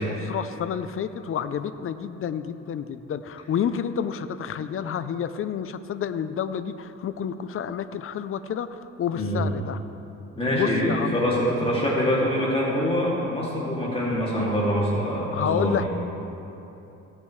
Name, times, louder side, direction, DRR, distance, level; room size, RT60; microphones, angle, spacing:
voice 1, 0.0-9.8 10.5-11.2 15.3-15.9, left 8 dB, 45° left, 12 dB, 0.6 m, -29 dB
voice 2, 10.4-15.9, equal, 20° left, -5 dB, 2.5 m, -24 dB
17.5 x 8.8 x 3.2 m, 3.0 s
cardioid pair, 90°, 30 cm